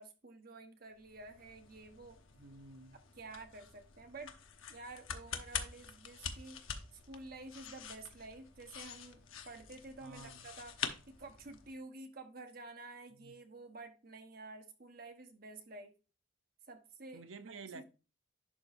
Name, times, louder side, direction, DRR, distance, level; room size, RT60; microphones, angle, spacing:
voice 1, 0.0-2.2 3.1-4.3 4.7-6.6 7.1-10.8 11.2-15.9 16.7-17.2 17.5-17.8, right 2 dB, 50° right, 1.1 m, -50 dB
sound 1, 1.0-11.7, left 7 dB, 85° left, 1.0 m, -46 dB
voice 2, 2.4-3.0 10.0-10.5 13.2-13.3 17.1-17.8, right 3 dB, 80° right, 0.7 m, -51 dB
11.0 x 4.7 x 2.6 m
head